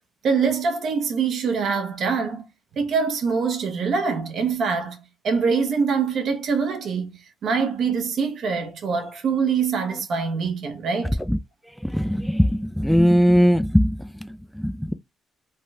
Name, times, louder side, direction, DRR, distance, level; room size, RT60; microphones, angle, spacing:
voice 1, 0.2-2.4 2.8-5.0 5.2-11.2, right 5 dB, 65° right, 0.8 m, -24 dB
voice 2, 11.8-14.9, equal, ahead, 0.3 m, -20 dB
3.4 x 2.2 x 2.7 m
cardioid pair, 90°, 0 cm